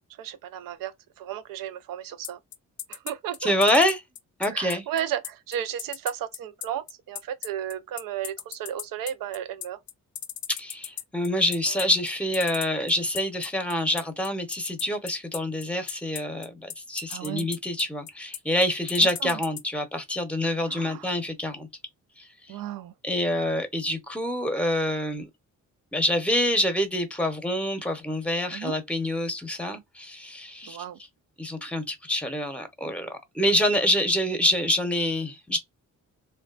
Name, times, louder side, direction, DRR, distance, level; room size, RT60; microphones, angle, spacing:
voice 1, 0.2-2.4 2.9-3.5 4.4-9.8 11.7-11.9 17.1-17.5 19.0-19.4 20.6-21.1 22.5-23.0 28.5-28.8 30.7-31.0, right 10 dB, 80° right, 0.5 m, -34 dB
sound 1, 2.2-19.6, left 10 dB, 60° left, 0.5 m, -36 dB
voice 2, 3.4-4.0 4.4-4.8 10.5-21.7 22.2-22.6 23.0-25.3 25.9-30.8 31.4-35.6, left 1 dB, 5° left, 0.7 m, -26 dB
3.0 x 2.2 x 2.4 m
cardioid pair, 105°, 33 cm